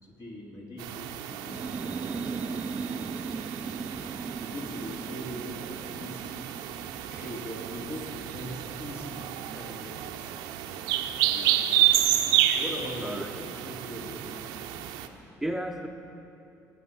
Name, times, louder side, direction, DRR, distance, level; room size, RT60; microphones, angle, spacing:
voice 1, 0.0-3.4 4.0-6.4 7.1-10.4 10.8-11.0 12.5-14.6, equal, 50° left, -3 dB, 3.8 m, -41 dB
sound 1, 0.8-15.1, right 12 dB, 85° right, 0.7 m, -30 dB
sound 2, 1.4-8.9, right 4 dB, 20° right, 0.5 m, -39 dB
voice 2, 11.3-12.1 13.0-13.3 15.4-15.9, right 1 dB, 5° right, 2 dB, 0.9 m, -35 dB
22.0 x 8.4 x 5.6 m, 2.8 s
supercardioid pair, 65°, 7 cm